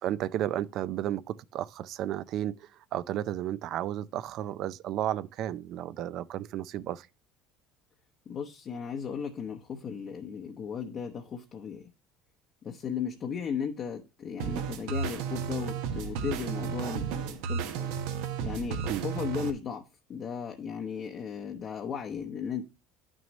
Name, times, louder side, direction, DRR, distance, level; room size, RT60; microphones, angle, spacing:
voice 1, 0.0-7.1 18.9-19.0, right 12 dB, 50° right, 0.4 m, -33 dB
voice 2, 8.3-11.9 12.6-18.0 18.4-22.6, left 7 dB, 35° left, 0.8 m, -36 dB
sound 1, 14.4-19.5, right 7 dB, 80° right, 1.2 m, -33 dB
11.0 x 6.2 x 3.0 m
cardioid pair, 150°, 0 cm